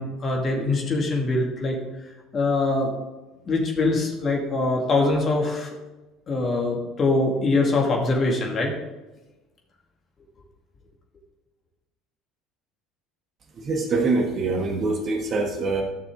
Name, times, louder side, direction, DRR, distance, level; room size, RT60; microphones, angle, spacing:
voice 1, 0.0-1.8 2.3-2.9 3.5-5.7 6.3-8.7, left 2 dB, 35° left, 0 dB, 2.3 m, -23 dB
voice 2, 13.6-15.8, right 3 dB, 40° right, 2 dB, 1.6 m, -24 dB
13.0 x 6.7 x 3.8 m, 1.1 s
figure-of-eight pair, 65°, 0 cm